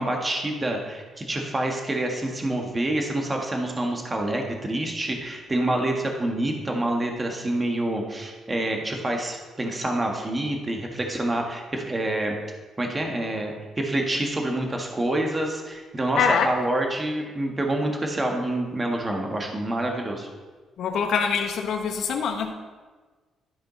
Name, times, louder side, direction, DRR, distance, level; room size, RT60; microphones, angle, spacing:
voice 1, 0.0-12.3 12.8-20.3, right 1 dB, 25° right, 2 dB, 1.4 m, -27 dB
voice 2, 16.2-16.5 20.8-22.5, left 6 dB, 70° left, 4 dB, 1.0 m, -24 dB
12.0 x 5.0 x 4.0 m, 1.4 s
cardioid pair, 90°, 0 cm